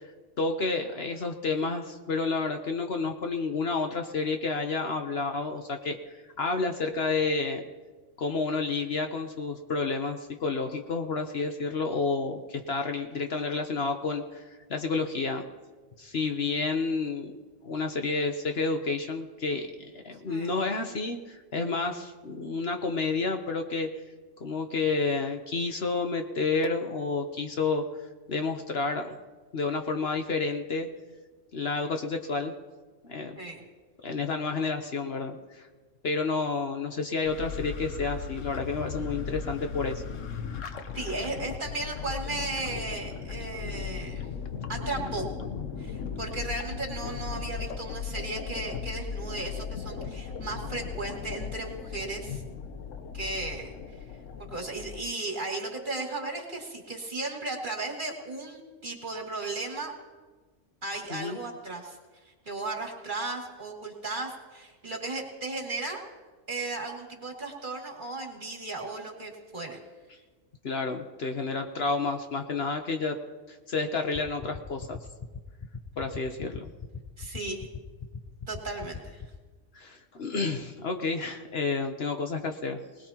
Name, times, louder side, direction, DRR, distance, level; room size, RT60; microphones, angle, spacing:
voice 1, 0.4-6.0 6.4-7.6 8.2-15.4 16.0-17.3 17.6-23.9 24.4-27.8 28.3-29.2 29.5-30.9 31.5-32.5 33.1-33.4 34.0-35.7 36.0-40.2 61.1-61.4 70.6-73.2 73.5-75.0 76.0-76.7 79.7-82.8, left 4 dB, 55° left, 5 dB, 1.1 m, -30 dB
voice 2, 33.4-33.7 40.9-44.3 44.7-45.4 45.8-52.4 53.1-53.7 54.4-59.9 60.8-62.0 62.5-66.0 66.5-69.8 77.2-77.7 78.5-79.2, right 2 dB, 40° right, -2 dB, 2.6 m, -35 dB
sound 1, 37.3-55.0, left 6 dB, 75° left, 1.2 m, -37 dB
sound 2, 74.1-79.3, left 6 dB, 35° left, 0.8 m, -38 dB
20.5 x 20.0 x 2.9 m, 1.3 s
omnidirectional pair, 1.3 m